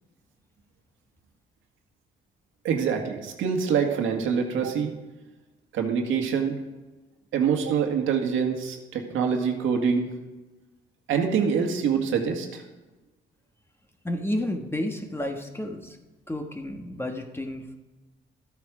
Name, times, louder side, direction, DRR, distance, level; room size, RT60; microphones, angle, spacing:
voice 1, 2.6-4.9 5.7-6.6 7.3-10.1 11.1-12.6, right 6 dB, 85° right, 3 dB, 1.8 m, -25 dB
voice 2, 14.0-16.0 16.3-17.8, left 1 dB, 10° left, 4 dB, 1.4 m, -31 dB
13.5 x 8.6 x 5.0 m, 1.2 s
cardioid pair, 90°, 20 cm